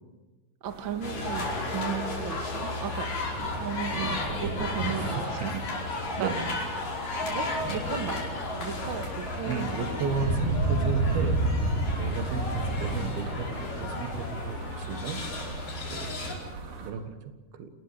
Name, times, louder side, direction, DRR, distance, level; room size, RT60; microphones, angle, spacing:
voice 1, 0.6-3.1 3.6-5.5 6.2-6.3 7.3-8.2 8.6-9.6, right 7 dB, 40° right, 6 dB, 2.0 m, -35 dB
sound 1, 0.7-16.9, right 2 dB, 65° right, 4.2 m, -33 dB
sound 2, 1.0-16.4, left 2 dB, 60° left, 6.5 m, -34 dB
sound 3, 1.2-13.9, left 4 dB, 90° left, 4.1 m, -50 dB
voice 2, 4.9-5.6 6.2-6.5 9.5-11.4 12.0-15.2 15.8-16.1 16.8-17.7, right 6 dB, 85° right, 8 dB, 3.6 m, -34 dB
28.0 x 20.0 x 6.7 m, 1.2 s
omnidirectional pair, 4.2 m